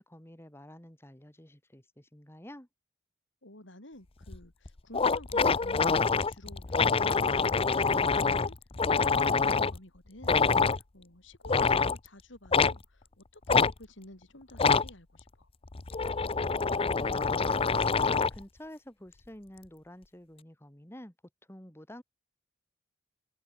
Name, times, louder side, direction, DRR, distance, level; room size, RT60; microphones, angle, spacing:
voice 1, 0.0-2.7 16.7-21.1 21.5-22.0, left 1 dB, 15° left, 3.1 m, -49 dB
voice 2, 3.4-8.6 8.8-15.5, left 1 dB, 75° left, 5.3 m, -51 dB
sound 1, 4.3-4.4 4.7-4.8 4.9-9.8 10.2-10.8 11.4-12.0 12.5-12.8 13.5-13.7 14.5-14.9 15.7-18.4, left 5 dB, 30° left, 0.7 m, -26 dB
open air
head